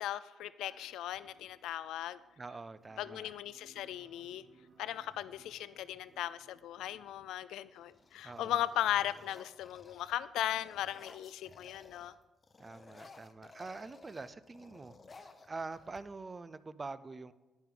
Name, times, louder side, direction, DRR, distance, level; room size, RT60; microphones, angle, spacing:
voice 1, 0.0-2.2 3.0-4.4 4.8-12.1, left 12 dB, 85° left, 15 dB, 0.3 m, -37 dB
sound 1, 0.6-1.5 3.2-3.3 3.7-4.2 4.7-6.2 6.9-7.3 7.6-12.2 12.4-16.4, left 3 dB, 35° left, 0.8 m, -58 dB
sound 2, 0.6-7.4, right 3 dB, 65° right, 3.3 m, -66 dB
voice 2, 2.4-3.3 8.2-8.6 12.6-17.3, right 3 dB, 30° right, 15 dB, 0.5 m, -45 dB
10.5 x 9.2 x 3.8 m, 1.1 s
cardioid pair, 90°, 0 cm